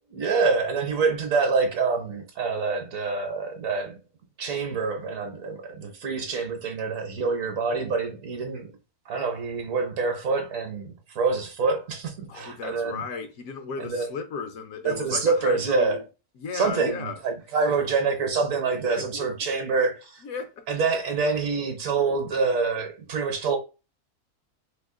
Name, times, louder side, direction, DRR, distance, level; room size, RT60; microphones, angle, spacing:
voice 1, 0.1-4.0 4.4-8.7 9.1-13.0 13.8-14.1 14.8-16.0 16.5-20.2 20.7-23.6, right 4 dB, 65° right, 1.1 m, -26 dB
voice 2, 12.3-16.0 16.4-17.2 17.7-17.8 18.8-19.3 20.2-20.6, left 5 dB, 70° left, 1.1 m, -35 dB
2.9 x 2.3 x 3.6 m
omnidirectional pair, 1.6 m